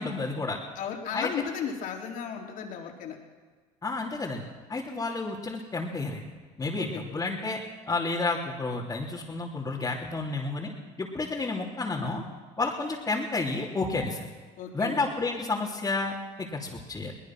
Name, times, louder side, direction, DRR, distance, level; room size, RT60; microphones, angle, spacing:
voice 1, 0.0-0.6 1.1-1.3 3.8-4.4 4.7-6.3 6.6-7.6 7.9-10.7 11.0-12.2 12.6-14.3 14.7-17.1, left 3 dB, 20° left, -4 dB, 3.2 m, -31 dB
voice 2, 0.8-3.2 6.7-7.0 14.6-15.0, left 7 dB, 60° left, 1 dB, 3.9 m, -35 dB
23.0 x 19.0 x 6.2 m, 1.4 s
supercardioid pair, 100°, 15 cm